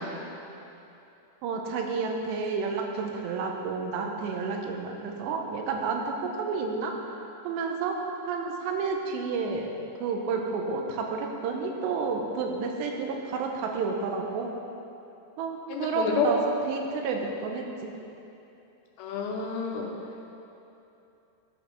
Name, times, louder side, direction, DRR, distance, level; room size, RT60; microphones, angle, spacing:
voice 1, 1.4-8.0 8.2-9.7 10.0-14.5 15.4-17.9, right 4 dB, 90° right, 2 dB, 2.8 m, -31 dB
voice 2, 15.7-16.3 19.0-19.9, left 7 dB, 80° left, 1 dB, 2.8 m, -29 dB
12.5 x 5.1 x 3.4 m, 2.8 s
omnidirectional pair, 4.9 m